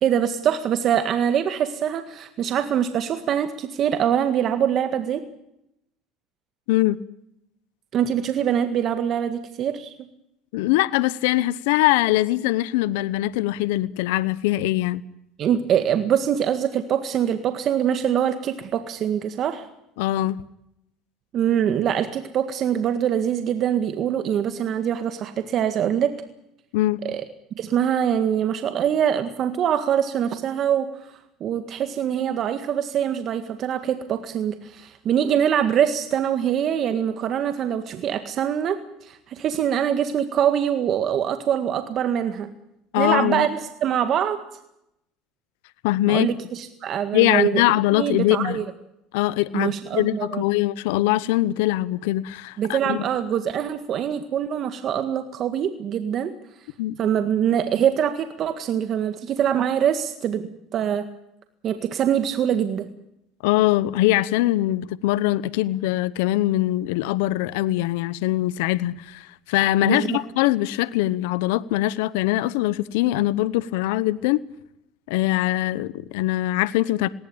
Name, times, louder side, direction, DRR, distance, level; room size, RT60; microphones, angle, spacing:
voice 1, 0.0-5.2 7.9-9.9 15.4-19.7 21.3-26.1 27.0-27.2 27.6-42.5 43.0-44.4 46.1-47.6 47.9-48.6 49.5-50.4 52.6-56.3 57.0-61.1 61.6-62.9 69.8-70.2, right 9 dB, 45° right, 1.8 m, -24 dB
voice 2, 6.7-7.0 10.5-15.0 20.0-20.4 26.7-27.0 42.9-43.5 45.8-46.3 47.1-48.6 49.1-53.0 56.8-56.9 63.4-74.4 75.1-77.1, left 16 dB, 85° left, 0.9 m, -22 dB
19.5 x 18.5 x 8.7 m
supercardioid pair, 115°, 0 cm